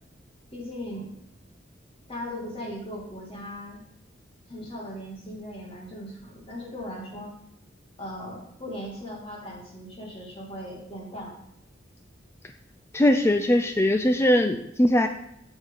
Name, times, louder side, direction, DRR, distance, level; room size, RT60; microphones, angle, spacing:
voice 1, 0.5-1.2 2.1-3.8 4.5-7.3 8.0-11.4, equal, 30° left, -2 dB, 2.4 m, -38 dB
voice 2, 12.9-15.1, left 1 dB, 15° left, 7 dB, 0.3 m, -21 dB
8.1 x 7.3 x 3.9 m, 0.79 s
head